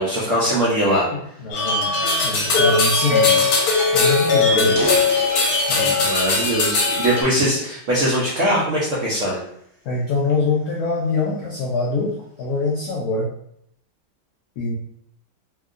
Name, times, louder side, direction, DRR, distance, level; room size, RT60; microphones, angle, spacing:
voice 1, 0.0-1.1 4.4-5.0 6.0-9.4, right 1 dB, 85° right, -5 dB, 0.6 m, -21 dB
voice 2, 1.1-1.9 2.2-3.5 3.9-4.9 5.7-6.0 9.9-12.1 12.4-13.3 14.6-14.7, left 3 dB, 80° left, -3 dB, 0.8 m, -24 dB
sound 1, 1.5-7.2, left 4 dB, 60° left, 1.1 m, -19 dB
sound 2, 3.9-4.0 4.5-6.1 6.7-8.0 8.5-8.8 9.4-11.5, right 1 dB, 50° right, 0.9 m, -33 dB
2.9 x 2.7 x 2.4 m, 0.73 s
omnidirectional pair, 2.2 m